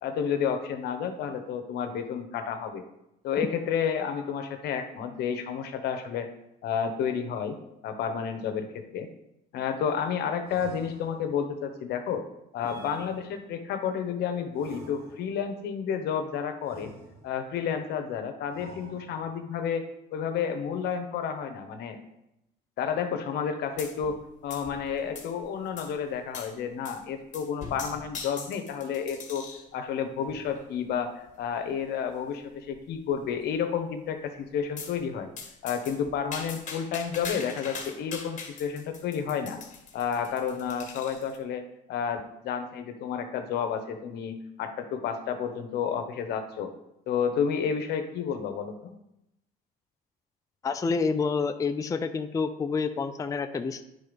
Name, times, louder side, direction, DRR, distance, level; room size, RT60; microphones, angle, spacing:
voice 1, 0.0-2.8 3.2-6.3 6.6-7.6 7.8-9.1 9.5-12.3 12.5-16.9 17.2-19.8 20.1-22.0 22.8-29.5 29.7-35.3 35.6-39.6 39.9-46.7 47.1-48.9, left 7 dB, 75° left, 7 dB, 1.0 m, -31 dB
sound 1, 10.5-11.5 12.6-13.6 14.5-15.5 16.6-17.5 18.5-19.4, right 2 dB, 65° right, 2.9 m, -48 dB
sound 2, 23.8-24.2 24.5-25.4 25.8-25.9 26.3-26.5 26.8-27.0 27.3-29.7 30.3-30.6 31.3-31.4 31.7-31.8 32.1-32.2 32.7-33.1 34.8-35.0 35.4-41.4, left 5 dB, 45° left, 1.7 m, -41 dB
voice 2, 50.6-53.8, left 5 dB, 20° left, 8 dB, 0.4 m, -28 dB
9.7 x 3.9 x 5.2 m, 0.85 s
cardioid pair, 110°, 17 cm